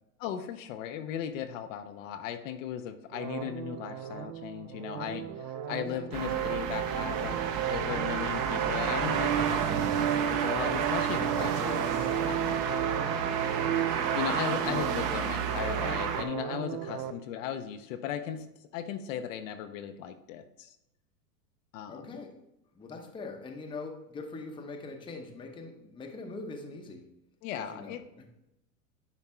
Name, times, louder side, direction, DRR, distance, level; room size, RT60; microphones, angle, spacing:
voice 1, 0.2-7.4 7.7-12.6 14.1-20.8 21.7-22.2 27.4-28.0, left 9 dB, 50° left, 8 dB, 0.7 m, -37 dB
sound 1, 3.1-17.1, right 10 dB, 70° right, 0.7 m, -33 dB
sound 2, 6.1-16.2, right 7 dB, 40° right, 0.9 m, -31 dB
voice 2, 21.9-22.4 22.7-27.1 27.6-28.3, left 3 dB, 10° left, 3 dB, 0.7 m, -42 dB
9.9 x 3.5 x 4.3 m, 0.85 s
hypercardioid pair, 120°, 49 cm